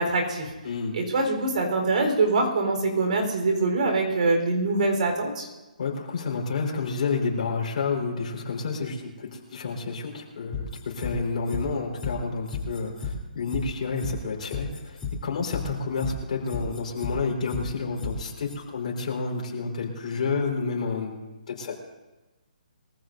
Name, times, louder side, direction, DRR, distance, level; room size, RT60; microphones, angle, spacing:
voice 1, 0.0-0.5 0.9-5.5, right 3 dB, 55° right, 2 dB, 4.3 m, -24 dB
voice 2, 0.6-1.0 5.8-21.1 21.5-21.7, left 4 dB, 55° left, -1 dB, 4.5 m, -30 dB
sound 1, 10.5-11.1 11.5-11.6 12.0-12.1 12.5-13.1 13.5-13.6 14.0-14.1 14.5-15.1 15.5-15.6 16.0-16.1 16.5-17.1 17.5-17.6 18.0-18.1 18.5-18.6, left 8 dB, 10° left, 3.2 m, -32 dB
23.0 x 15.0 x 2.7 m, 1.1 s
hypercardioid pair, 160°, 5 cm